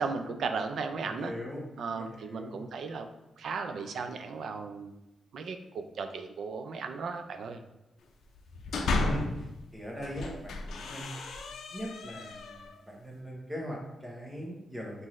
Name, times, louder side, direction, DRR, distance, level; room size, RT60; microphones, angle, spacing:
voice 1, 0.0-1.3 1.8-3.1 3.4-4.9 5.3-7.6, right 4 dB, 65° right, 7 dB, 0.4 m, -35 dB
voice 2, 1.0-1.6 1.9-2.6 9.1-11.2 11.7-15.1, equal, 10° right, -2 dB, 1.0 m, -40 dB
sound 1, 8.4-9.5 10.0-12.8, left 2 dB, 85° left, 0.5 m, -34 dB
5.5 x 2.6 x 3.1 m, 0.93 s
wide cardioid pair, 150°, 0 cm